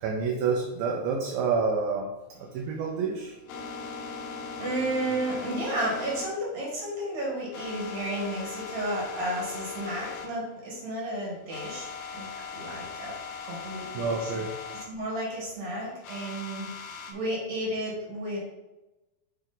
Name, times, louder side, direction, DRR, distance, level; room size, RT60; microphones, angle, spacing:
voice 1, 0.0-2.1 2.4-3.4 13.9-14.5, right 5 dB, 80° right, 1 dB, 2.2 m, -28 dB
sound 1, 2.3-10.3 10.6-10.7 11.1-11.2 11.5-14.9 16.0-17.1, left 5 dB, 85° left, 2.8 m, -39 dB
voice 2, 4.6-11.9 12.1-13.1 13.4-14.3 14.9-18.4, right 1 dB, 55° right, -4 dB, 2.0 m, -32 dB
9.6 x 3.2 x 3.9 m, 1.0 s
omnidirectional pair, 4.8 m